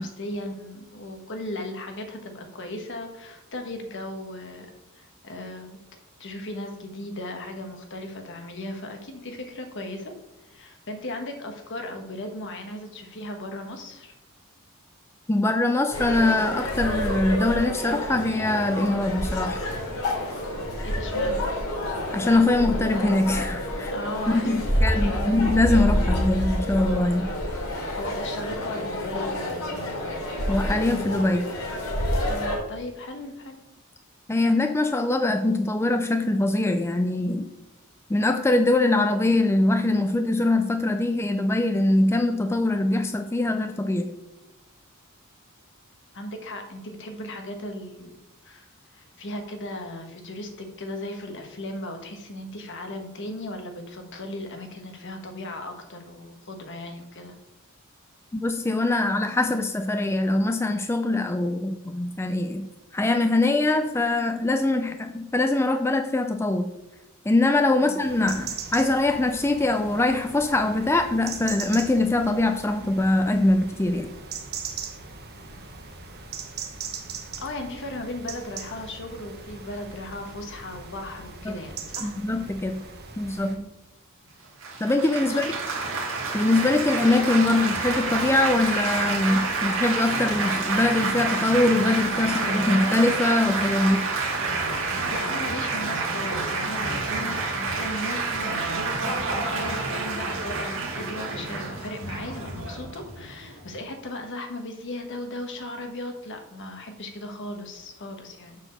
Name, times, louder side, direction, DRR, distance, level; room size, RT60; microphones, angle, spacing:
voice 1, 0.0-4.7 4.9-5.8 6.2-10.1 10.4-14.1 20.8-21.4 23.9-25.3 27.9-30.0 32.3-33.6 46.1-48.1 48.4-57.3 67.9-68.0 77.4-82.2 83.4-83.7 85.2-85.6 94.9-108.6, left 1 dB, 60° left, 5 dB, 1.3 m, -37 dB
voice 2, 15.3-19.6 22.1-23.9 24.3-27.3 30.5-31.5 34.3-37.5 38.1-44.1 58.3-66.7 67.3-74.1 81.5-81.6 82.0-82.8 83.2-83.6 84.8-85.5 86.3-94.1, left 2 dB, 10° left, 7 dB, 0.4 m, -23 dB
sound 1, 15.9-32.6, equal, 90° left, 2.8 m, -28 dB
sound 2, 68.0-83.6, right 5 dB, 50° right, 1.0 m, -39 dB
Laughter / Applause / Chatter, 84.6-103.7, right 3 dB, 65° right, 1.8 m, -28 dB
7.1 x 4.2 x 6.6 m, 0.96 s
head